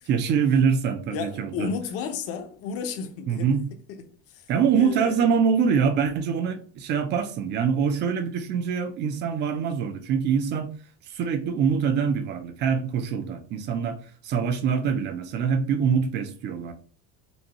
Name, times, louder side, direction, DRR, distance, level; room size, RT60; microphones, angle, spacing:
voice 1, 0.1-1.7 3.3-3.7 4.5-10.7 11.1-14.0 14.2-16.7, right 6 dB, 30° right, 0.4 m, -24 dB
voice 2, 1.1-3.5 3.9-4.0 4.3-4.4 4.8-5.3, left 6 dB, 40° left, 0.6 m, -33 dB
5.2 x 2.3 x 2.9 m
cardioid pair, 175°, 35 cm